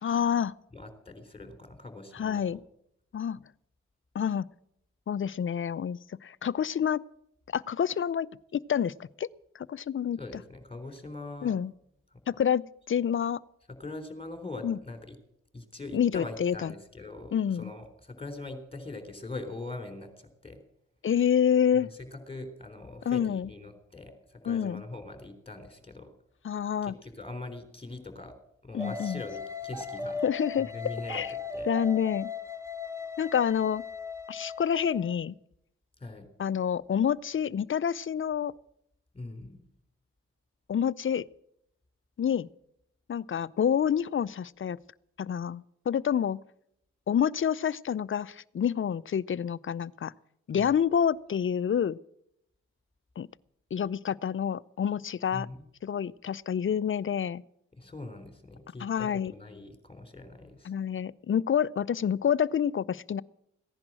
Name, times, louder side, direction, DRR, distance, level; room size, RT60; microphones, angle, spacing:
voice 1, 0.0-0.5 2.1-2.6 3.1-3.4 4.1-4.5 5.1-7.0 7.5-8.3 8.5-9.3 9.5-10.2 11.4-11.7 12.3-12.6 12.9-13.4 14.6-14.8 15.9-16.7 17.3-17.7 21.0-21.9 23.1-23.5 24.5-24.8 26.4-26.9 28.7-29.2 30.2-30.7 31.1-31.3 31.7-32.3 33.2-33.8 34.3-35.3 36.4-38.5 40.7-41.2 42.2-42.5 43.1-44.8 45.2-46.4 47.1-50.1 50.5-52.0 53.2-53.3 53.7-55.5 55.8-57.4 58.8-59.3 60.7-63.2, left 8 dB, 40° left, 21 dB, 0.5 m, -28 dB
voice 2, 0.7-2.6 10.2-11.5 12.1-12.2 13.7-15.2 15.5-20.6 21.7-26.1 26.8-28.3 28.6-30.2 30.6-31.2 31.5-31.7 36.0-36.3 39.1-39.7 50.6-50.7 55.3-55.7 57.8-60.7, left 2 dB, 15° left, 7 dB, 3.7 m, -42 dB
sound 1, 28.8-35.1, left 4 dB, 10° right, 2.2 m, -38 dB
16.0 x 10.5 x 7.5 m, 0.76 s
supercardioid pair, 45°, 32 cm